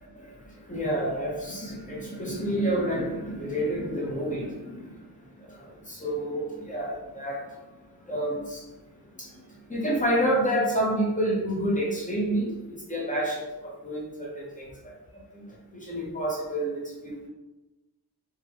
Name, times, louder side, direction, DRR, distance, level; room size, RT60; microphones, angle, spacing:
voice 1, 0.1-8.4 9.0-17.3, right 1 dB, 20° left, -4 dB, 1.0 m, -30 dB
2.8 x 2.3 x 3.4 m, 1.0 s
wide cardioid pair, 50°, 40 cm